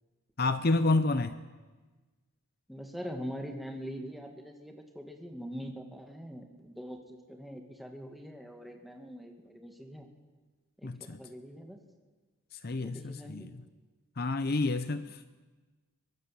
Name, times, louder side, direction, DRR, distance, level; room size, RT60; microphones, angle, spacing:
voice 1, 0.4-1.3 10.8-11.2 12.6-13.6 14.2-15.3, left 2 dB, 45° left, 12 dB, 0.7 m, -29 dB
voice 2, 2.7-10.1 10.8-11.8 12.8-13.5 15.0-15.1, equal, ahead, 3 dB, 2.1 m, -43 dB
23.0 x 19.5 x 7.5 m, 1.3 s
head